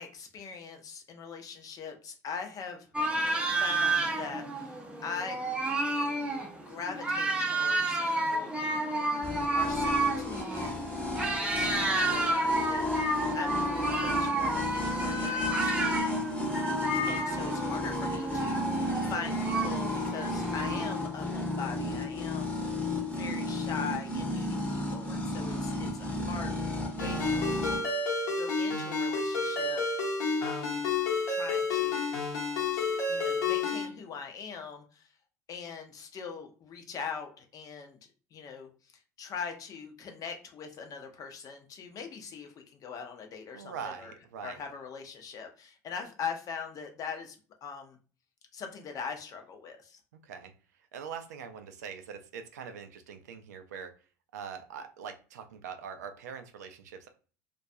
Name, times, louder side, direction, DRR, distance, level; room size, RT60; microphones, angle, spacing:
voice 1, 0.0-2.9 3.6-5.4 6.6-11.1 11.4-16.2 17.1-26.6 26.9-29.8 30.4-30.8 31.3-32.2 32.7-35.1 35.5-38.0 38.3-38.9 39.2-44.1 44.4-47.4 47.6-48.0 48.5-50.0, left 6 dB, 40° left, 4 dB, 0.6 m, -42 dB
sound 1, 2.9-21.0, right 2 dB, 10° right, 0.6 m, -31 dB
sound 2, 9.2-27.8, left 2 dB, 15° left, 0.9 m, -33 dB
Ringtone, 27.0-33.9, left 4 dB, 70° left, 0.8 m, -30 dB
voice 2, 43.5-44.6 50.2-50.5 50.9-53.9 54.3-57.1, right 7 dB, 75° right, 7 dB, 0.4 m, -43 dB
2.3 x 2.2 x 2.6 m, 0.37 s
hypercardioid pair, 70°, 9 cm